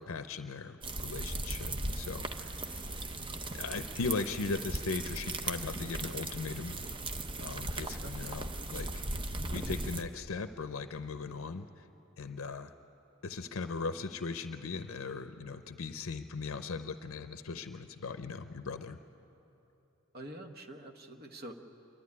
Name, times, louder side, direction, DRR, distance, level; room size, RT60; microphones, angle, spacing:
voice 1, 0.0-3.2 3.5-6.8 7.4-9.1 9.4-11.9 12.2-12.7 13.2-19.0, left 4 dB, 75° left, 9 dB, 0.6 m, -39 dB
sound 1, 0.8-10.0, right 2 dB, 25° right, 0.6 m, -38 dB
voice 2, 20.1-21.6, right 1 dB, 45° right, 4 dB, 1.2 m, -46 dB
26.0 x 11.5 x 9.7 m, 3.0 s
head